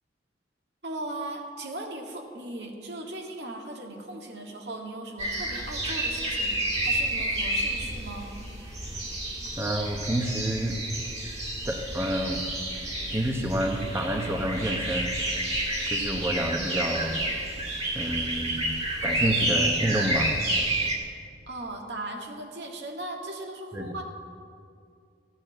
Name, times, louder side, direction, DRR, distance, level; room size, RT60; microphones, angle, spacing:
voice 1, 0.8-8.3 21.5-24.0, right 2 dB, 75° right, 1 dB, 1.9 m, -38 dB
sound 1, 5.2-21.0, right 1 dB, 35° right, 2.2 m, -30 dB
voice 2, 9.6-10.8 11.6-12.4 13.1-15.2 15.9-17.2 17.9-18.8 19.0-20.3 23.7-23.9, right 1 dB, 15° right, 2 dB, 0.8 m, -29 dB
15.0 x 8.9 x 7.7 m, 2.3 s
head